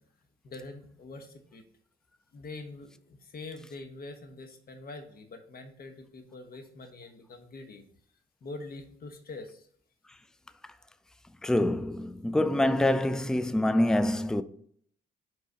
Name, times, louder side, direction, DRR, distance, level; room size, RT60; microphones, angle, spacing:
voice 1, 0.4-1.6 2.3-7.8 8.4-9.7, left 3 dB, 50° left, 1.1 m, -44 dB
voice 2, 11.4-14.4, left 1 dB, 5° left, 0.3 m, -25 dB
5.0 x 4.0 x 5.2 m
cardioid pair, 90°, 20 cm